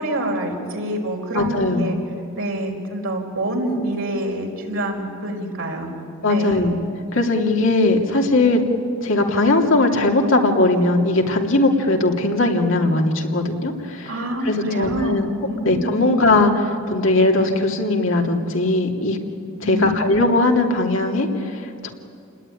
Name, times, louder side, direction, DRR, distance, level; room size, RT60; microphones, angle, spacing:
voice 1, 0.0-2.0 2.3-5.9 6.2-6.7 14.0-15.2 15.5-16.1 19.6-20.2, right 1 dB, 85° right, 1 dB, 4.9 m, -26 dB
voice 2, 1.3-1.9 6.2-6.7 7.1-8.6 9.0-14.1 14.4-15.3 15.6-19.2 19.6-21.9, left 2 dB, 70° left, 1 dB, 2.9 m, -19 dB
28.5 x 20.5 x 10.0 m, 2.5 s
head